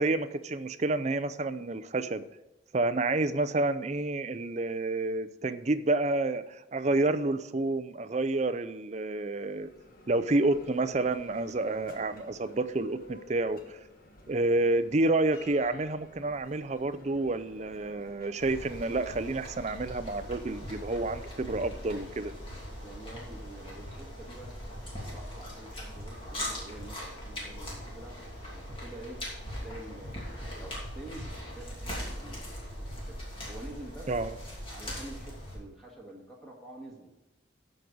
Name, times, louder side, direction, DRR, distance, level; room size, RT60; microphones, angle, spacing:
voice 1, 0.0-2.2 2.7-9.7 10.1-13.8 14.3-22.3 34.1-34.4, right 2 dB, 35° right, 12 dB, 0.5 m, -29 dB
Bell, 9.2-21.0, left 1 dB, 45° left, 1.4 m, -54 dB
sound 1, 18.4-35.6, equal, 30° left, 2.7 m, -40 dB
voice 2, 22.8-28.2 28.5-29.2 29.5-33.2 33.5-34.1 34.7-37.1, right 1 dB, ahead, -3 dB, 1.7 m, -48 dB
14.0 x 5.3 x 4.8 m, 0.97 s
head